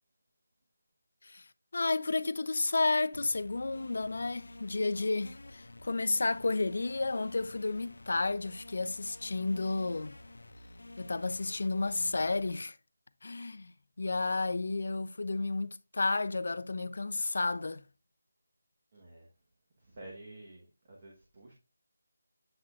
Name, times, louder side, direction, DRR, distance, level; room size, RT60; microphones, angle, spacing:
voice 1, 1.7-10.2 11.0-12.8 13.2-13.7 14.0-17.8, left 3 dB, 45° left, 0.4 m, -32 dB
sound 1, 3.1-12.5, left 2 dB, 85° left, 0.8 m, -51 dB
voice 2, 18.9-19.3 19.8-21.5, right 1 dB, 20° right, 1.0 m, -50 dB
7.6 x 6.0 x 2.3 m
figure-of-eight pair, 180°, 0 cm